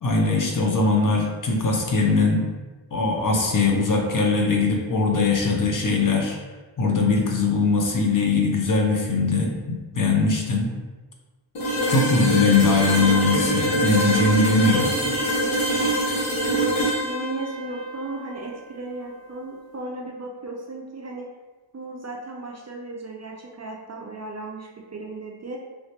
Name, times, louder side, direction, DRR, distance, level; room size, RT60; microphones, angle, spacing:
voice 1, 0.0-2.5 2.9-6.4 6.8-10.7 11.9-14.9, left 3 dB, 45° left, 1 dB, 0.5 m, -21 dB
sound 1, 11.5-19.4, right 1 dB, 90° left, 0.9 m, -25 dB
voice 2, 17.0-21.3 21.7-25.6, right 2 dB, 35° right, 0 dB, 0.4 m, -35 dB
3.1 x 3.1 x 2.8 m, 1.3 s
wide cardioid pair, 115°, 46 cm